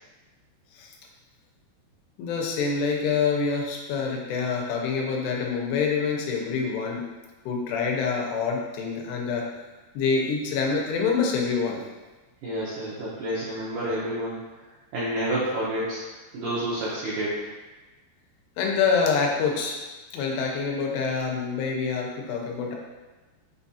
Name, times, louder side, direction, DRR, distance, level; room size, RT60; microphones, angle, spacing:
voice 1, 2.2-7.0 7.5-9.5 10.0-11.8 18.6-19.7 20.1-22.8, left 5 dB, 85° left, 0 dB, 2.7 m, -26 dB
voice 2, 12.4-14.4 14.9-16.0 16.3-17.4, right 1 dB, 80° right, -8 dB, 1.9 m, -29 dB
6.5 x 2.3 x 2.7 m, 1.2 s
omnidirectional pair, 4.8 m